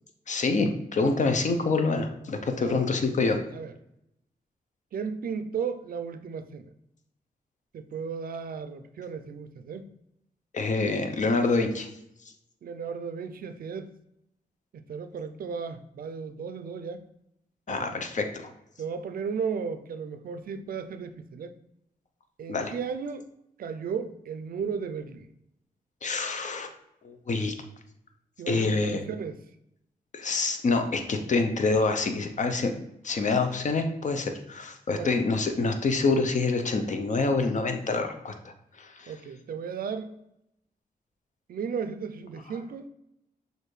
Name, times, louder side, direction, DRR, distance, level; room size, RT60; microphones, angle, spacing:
voice 1, 0.3-3.4 10.5-11.9 17.7-18.5 22.5-22.7 26.0-26.7 27.0-27.5 28.5-29.0 30.1-39.1, left 3 dB, 55° left, 6 dB, 0.6 m, -26 dB
voice 2, 2.6-2.9 3.5-3.7 4.9-6.7 7.7-9.9 12.6-13.9 14.7-17.0 17.7-17.9 18.8-21.5 22.4-23.3 23.6-25.3 28.4-29.4 34.9-35.1 39.1-40.1 41.5-42.9, right 6 dB, 70° right, 9 dB, 0.4 m, -35 dB
6.4 x 2.6 x 3.2 m, 0.81 s
cardioid pair, 85°, 15 cm